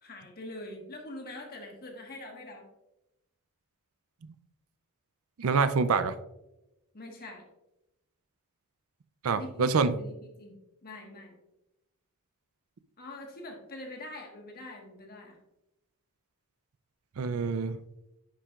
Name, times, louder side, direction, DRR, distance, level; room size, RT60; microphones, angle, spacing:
voice 1, 0.0-2.7 6.9-7.4 9.3-11.3 13.0-15.4, left 1 dB, 45° left, 1 dB, 1.5 m, -44 dB
voice 2, 5.4-6.2 9.2-10.0 17.2-17.8, right 5 dB, 65° right, 13 dB, 0.5 m, -26 dB
9.6 x 5.9 x 2.4 m, 0.91 s
head